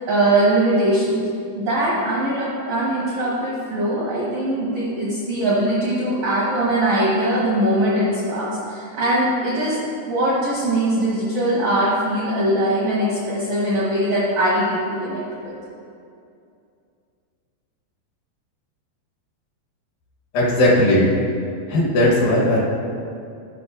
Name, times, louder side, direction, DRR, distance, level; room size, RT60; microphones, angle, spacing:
voice 1, 0.1-1.2 1.5-15.5, right 1 dB, 70° right, -8 dB, 1.7 m, -21 dB
voice 2, 20.3-21.1 21.7-22.6, left 1 dB, 70° left, -5 dB, 2.6 m, -17 dB
13.0 x 5.7 x 2.5 m, 2.5 s
omnidirectional pair, 4.8 m